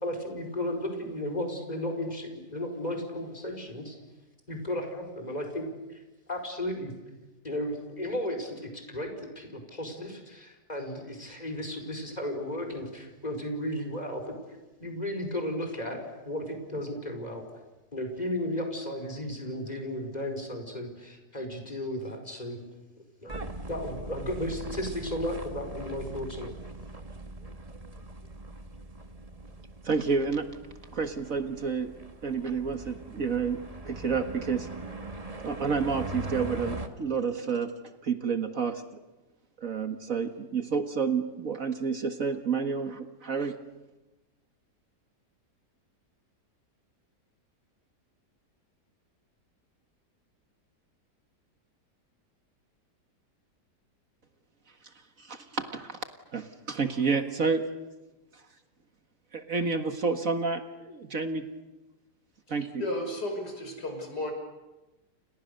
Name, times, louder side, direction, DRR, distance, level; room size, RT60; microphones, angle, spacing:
voice 1, 0.0-4.0 4.5-6.0 6.3-6.9 7.4-17.4 17.9-22.6 23.2-26.5, left 1 dB, 25° left, 4 dB, 5.2 m, -34 dB
sound 1, 23.3-36.9, right 2 dB, 20° right, 1.8 m, -41 dB
voice 2, 29.8-30.5 30.9-31.9 32.2-34.7 35.4-37.7 38.0-38.8 39.6-43.6 54.8-56.0 56.3-57.7 58.3-58.4 59.3-61.5 62.5-62.8, right 5 dB, 55° right, 7 dB, 2.0 m, -30 dB
voice 3, 62.8-64.3, left 1 dB, 75° left, 4 dB, 6.5 m, -33 dB
29.5 x 29.5 x 6.8 m, 1.1 s
omnidirectional pair, 1.8 m